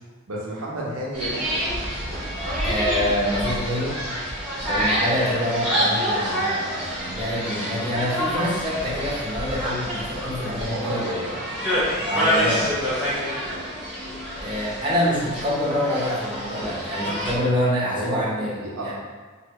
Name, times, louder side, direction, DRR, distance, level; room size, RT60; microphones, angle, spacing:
voice 1, 0.3-1.9 4.7-4.9 7.6-7.8 10.5-12.1 12.5-12.8 13.4-13.7 14.4-14.5 17.8-18.9, right 1 dB, 80° right, -4 dB, 0.7 m, -33 dB
sound 1, 1.1-17.3, equal, 5° right, 1.3 m, -27 dB
voice 2, 2.6-3.9 4.6-11.1 12.0-12.7 14.4-18.5 18.8-18.9, equal, 25° right, -8 dB, 0.9 m, -26 dB
3.3 x 2.5 x 3.0 m, 1.5 s
head